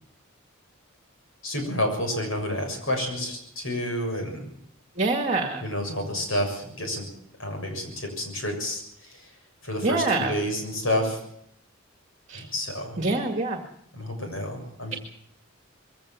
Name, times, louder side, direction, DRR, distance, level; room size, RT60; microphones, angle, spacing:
voice 1, 1.4-4.5 5.6-7.1 7.4-9.3 9.6-11.2 12.3-13.0 13.9-15.0, left 1 dB, 70° left, 4 dB, 7.0 m, -29 dB
voice 2, 5.0-5.6 9.8-10.3 12.3-12.4 13.0-13.6, right 2 dB, 35° right, 5 dB, 2.0 m, -25 dB
22.0 x 17.0 x 7.4 m, 0.72 s
head